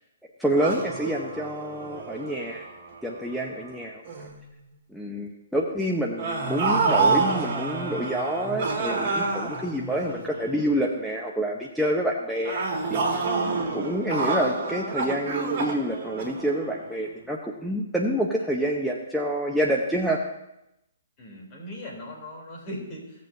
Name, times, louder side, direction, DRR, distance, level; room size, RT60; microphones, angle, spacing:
voice 1, 0.4-2.7 3.0-4.3 4.9-12.6 12.9-13.2 13.7-20.2, right 1 dB, ahead, -3 dB, 0.9 m, -27 dB
sound 1, 0.6-3.7 4.1-4.4 6.2-10.8 12.4-17.0, right 4 dB, 45° right, 2.1 m, -28 dB
voice 2, 21.2-23.3, left 1 dB, 35° left, -2 dB, 3.3 m, -39 dB
16.5 x 6.6 x 2.7 m, 0.85 s
hypercardioid pair, 130°, 0 cm